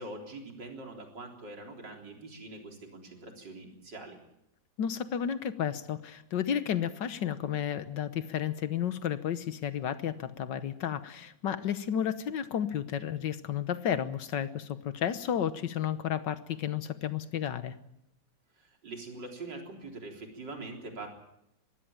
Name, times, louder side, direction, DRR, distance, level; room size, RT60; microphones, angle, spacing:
voice 1, 0.0-4.2 18.6-21.1, right 2 dB, 70° right, 2 dB, 4.4 m, -43 dB
voice 2, 4.8-17.7, left 9 dB, 75° left, 13 dB, 1.7 m, -32 dB
21.5 x 16.0 x 8.9 m, 0.80 s
omnidirectional pair, 2.0 m